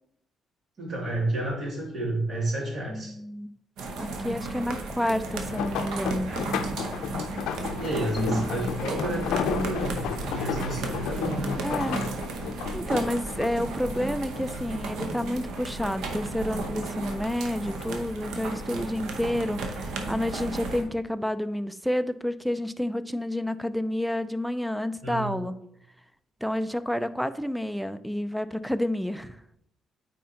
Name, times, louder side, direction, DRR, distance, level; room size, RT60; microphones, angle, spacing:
voice 1, 0.8-3.2 6.3-6.7 7.6-11.5 25.0-25.5, right 1 dB, 50° right, -2 dB, 2.5 m, -31 dB
voice 2, 2.9-3.5 4.0-6.3 8.2-8.4 11.6-12.0 12.7-25.5 26.4-29.6, left 1 dB, ahead, 13 dB, 0.4 m, -29 dB
sound 1, 3.8-20.8, right 2 dB, 85° right, 0.9 m, -34 dB
sound 2, 5.3-14.8 15.2-16.1 16.5-17.9 18.6-18.9 19.3-19.4, left 8 dB, 90° left, 0.5 m, -34 dB
9.2 x 4.2 x 2.9 m, 0.75 s
cardioid pair, 90°, 0 cm